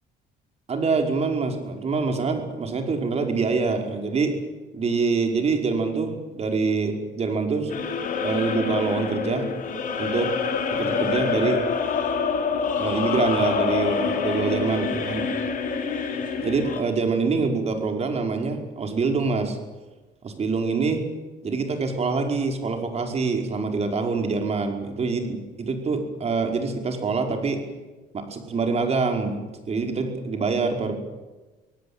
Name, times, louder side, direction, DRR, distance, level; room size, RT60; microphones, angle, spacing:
voice 1, 0.7-4.3 4.7-7.8 8.2-9.5 10.0-10.3 10.7-11.6 12.8-15.3 16.4-19.6 20.2-21.0 21.4-27.6 28.1-31.0, right 4 dB, 40° right, 4 dB, 5.2 m, -25 dB
sound 1, 7.7-16.8, left 5 dB, 50° left, 4.4 m, -26 dB
26.0 x 18.0 x 8.9 m, 1.2 s
cardioid pair, 110°, 17 cm